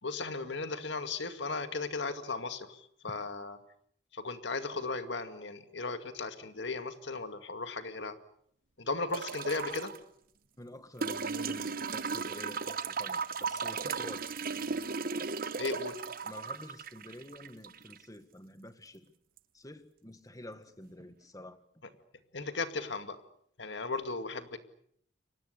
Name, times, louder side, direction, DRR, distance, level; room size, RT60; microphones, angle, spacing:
voice 1, 0.0-3.6 4.1-8.2 8.8-9.9 15.6-16.1 22.3-23.2 23.6-24.6, left 3 dB, 65° left, 2.3 m, -36 dB
sound 1, 9.1-10.0 11.0-18.0 19.4-19.5, right 5 dB, 50° right, 1.1 m, -36 dB
voice 2, 10.6-14.3 16.2-19.1 19.5-21.6, left 1 dB, 20° left, 1.7 m, -49 dB
30.0 x 24.0 x 6.8 m
head